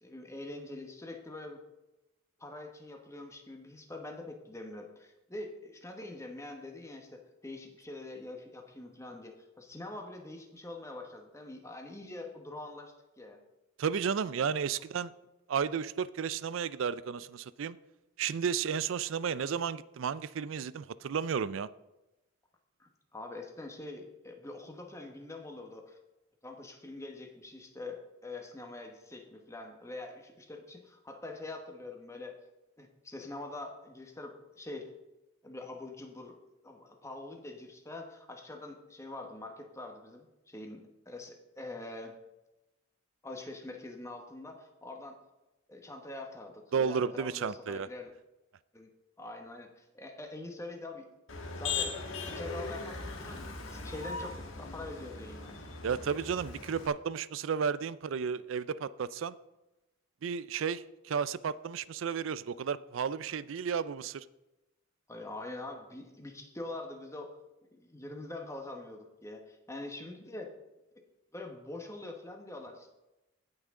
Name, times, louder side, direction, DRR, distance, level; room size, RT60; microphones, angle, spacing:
voice 1, 0.0-1.6 2.4-13.4 22.8-26.0 26.4-32.4 32.8-34.9 35.4-36.4 36.6-42.1 43.2-45.2 45.7-48.1 48.7-48.9 49.2-51.1 51.6-52.0 52.3-55.6 65.1-67.4 67.7-70.5 71.3-72.9, left 2 dB, 15° left, 1.1 m, -44 dB
voice 2, 13.8-15.1 15.5-17.8 18.2-21.7 46.7-47.9 55.8-59.4 60.2-64.2, right 6 dB, 75° right, 0.4 m, -33 dB
Motor vehicle (road), 51.3-56.9, left 4 dB, 80° left, 1.5 m, -39 dB
17.0 x 5.9 x 3.7 m
head